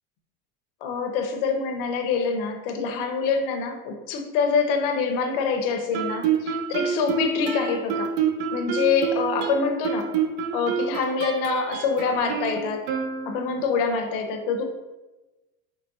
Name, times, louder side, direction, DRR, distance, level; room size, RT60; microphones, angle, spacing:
voice 1, 0.8-8.1 8.5-10.1 10.5-12.8 13.3-14.6, left 5 dB, 60° left, 4 dB, 0.6 m, -25 dB
Guitar, 5.9-13.7, right 6 dB, 70° right, 0.5 m, -28 dB
4.8 x 3.1 x 2.6 m, 1.1 s
supercardioid pair, 170°, 32 cm